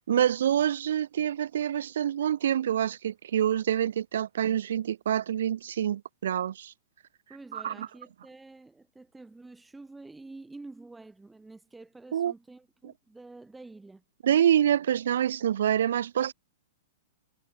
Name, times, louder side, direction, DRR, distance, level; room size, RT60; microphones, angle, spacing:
voice 1, 0.1-6.7 7.5-7.9 12.1-12.3 14.2-16.3, right 10 dB, 55° right, 0.9 m, -26 dB
voice 2, 7.3-14.0, right 3 dB, 5° right, 6.2 m, -48 dB
figure-of-eight pair, 105°, 0 cm